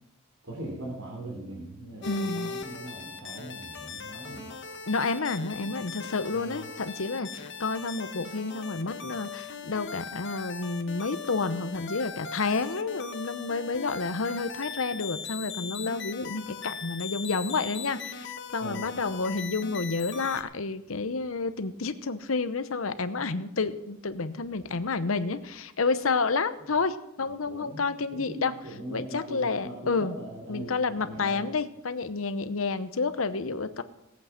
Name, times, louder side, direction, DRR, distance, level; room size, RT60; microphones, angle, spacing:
voice 1, 0.4-4.5 5.6-5.7 5.9-6.0 6.3-6.7 18.6-18.9 27.2-31.5, right 1 dB, 70° right, -2 dB, 3.2 m, -41 dB
sound 1, 2.0-20.4, left 5 dB, 60° left, 1.2 m, -39 dB
voice 2, 2.1-2.6 4.9-28.5 28.9-30.2 30.5-33.8, left 4 dB, 80° left, 11 dB, 0.9 m, -30 dB
18.0 x 8.4 x 5.9 m, 0.86 s
head